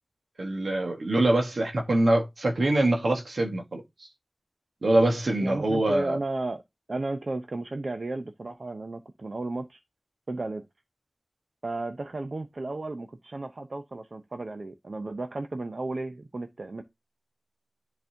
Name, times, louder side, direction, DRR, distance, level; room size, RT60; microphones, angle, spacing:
voice 1, 0.4-3.8 4.8-6.2, right 1 dB, 85° right, 1.7 m, -24 dB
voice 2, 5.4-6.6 6.9-9.8 10.3-10.6 11.6-16.8, right 2 dB, 60° right, 0.8 m, -34 dB
10.5 x 4.0 x 2.8 m
wide cardioid pair, 70°, 0 cm